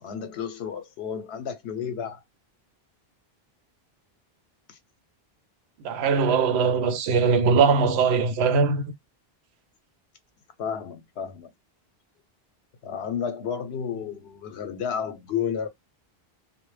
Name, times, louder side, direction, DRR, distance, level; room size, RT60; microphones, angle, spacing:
voice 1, 0.0-2.2 4.7-4.8 6.6-6.8 10.6-11.5 12.8-15.7, left 7 dB, 80° left, 0.8 m, -32 dB
voice 2, 5.8-8.8, right 5 dB, 85° right, 0.8 m, -21 dB
2.1 x 2.0 x 3.1 m
omnidirectional pair, 1.1 m